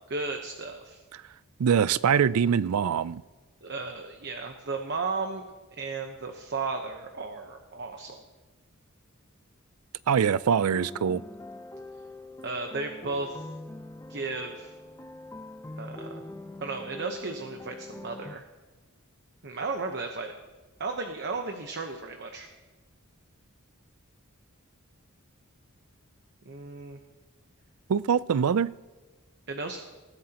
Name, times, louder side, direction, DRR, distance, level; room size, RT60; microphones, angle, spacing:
voice 1, 0.1-1.0 3.6-5.5 5.8-8.2 12.4-13.5 14.1-14.7 15.8-16.2 16.6-18.4 19.4-20.3 20.8-22.5 26.4-27.0 29.5-29.8, right 3 dB, 55° right, 1.0 m, -34 dB
voice 2, 1.6-3.2 10.1-11.2 27.9-28.7, right 7 dB, 90° right, 0.4 m, -23 dB
sound 1, 10.6-18.3, left 2 dB, 15° left, 0.6 m, -43 dB
21.0 x 15.0 x 2.9 m
head